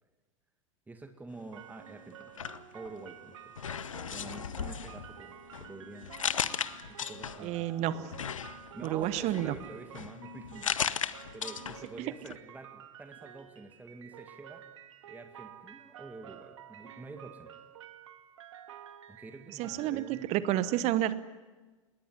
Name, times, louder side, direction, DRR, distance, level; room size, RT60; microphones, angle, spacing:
voice 1, 0.9-2.3 2.7-3.5 4.0-6.1 6.9-8.1 8.7-10.7 11.3-14.6 15.0-17.5 19.1-20.3, right 3 dB, 10° right, 5 dB, 2.1 m, -48 dB
sound 1, 1.5-20.8, right 10 dB, 65° right, 1.9 m, -51 dB
sound 2, 2.2-3.2 3.6-7.6 8.1-12.0 12.2-12.4, left 8 dB, 75° left, 1.0 m, -37 dB
voice 2, 7.4-8.1 8.8-9.5 12.0-12.1 19.5-21.3, right 13 dB, 40° right, 16 dB, 1.1 m, -30 dB
27.5 x 20.5 x 10.0 m, 1.3 s
figure-of-eight pair, 85°, 17 cm